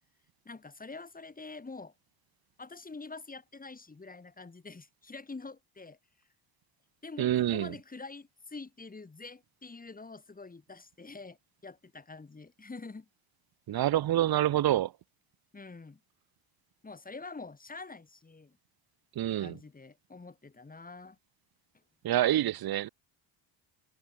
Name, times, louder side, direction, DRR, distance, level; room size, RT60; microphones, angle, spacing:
voice 1, 0.5-1.9 2.6-6.0 7.0-11.4 11.6-13.1 15.5-16.0 16.8-18.6 19.3-21.2, left 3 dB, 15° left, 7.1 m, -46 dB
voice 2, 7.2-7.7 13.7-14.9 19.1-19.6 22.0-22.9, right 13 dB, 45° right, 1.4 m, -27 dB
cardioid pair, 130°, 49 cm